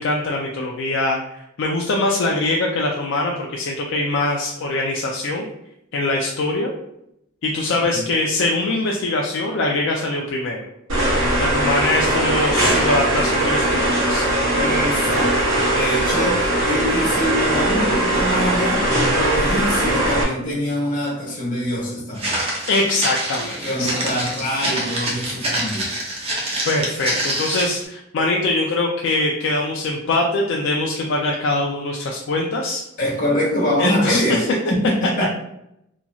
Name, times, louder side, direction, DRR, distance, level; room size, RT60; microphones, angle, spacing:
voice 1, 0.0-5.5 5.9-6.7 7.4-10.7 11.4-14.3 22.7-24.0 26.7-32.8 33.8-34.4, left 2 dB, 65° left, -1 dB, 0.4 m, -23 dB
sound 1, 10.9-20.2, right 1 dB, 70° right, 1.2 m, -20 dB
voice 2, 14.5-15.4 15.7-22.4 23.6-25.9 33.0-34.4 34.7-35.3, equal, 40° left, -4 dB, 1.1 m, -24 dB
Walk footsteps, 22.2-27.8, right 1 dB, 30° right, 0.7 m, -26 dB
2.9 x 2.6 x 2.3 m, 0.81 s
head